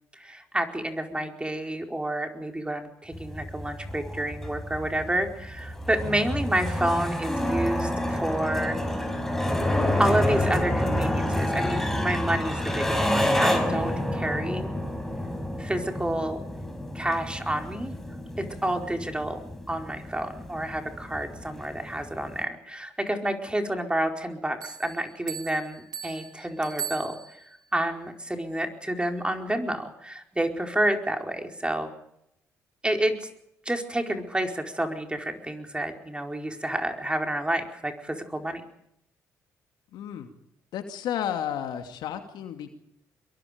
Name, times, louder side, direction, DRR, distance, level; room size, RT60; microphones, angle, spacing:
voice 1, 0.1-8.8 10.0-14.7 15.6-16.4 16.9-17.9 18.4-19.4 19.7-27.4 27.7-31.9 32.8-33.3 33.6-38.6, right 1 dB, 15° right, 4 dB, 4.6 m, -29 dB
sound 1, 3.1-22.4, left 1 dB, 5° left, 6.0 m, -29 dB
Bell, 24.6-27.7, right 8 dB, 55° right, 2.1 m, -39 dB
voice 2, 39.9-40.3 40.7-42.7, left 9 dB, 70° left, 7 dB, 2.6 m, -32 dB
24.5 x 22.5 x 5.2 m, 0.76 s
hypercardioid pair, 50°, 8 cm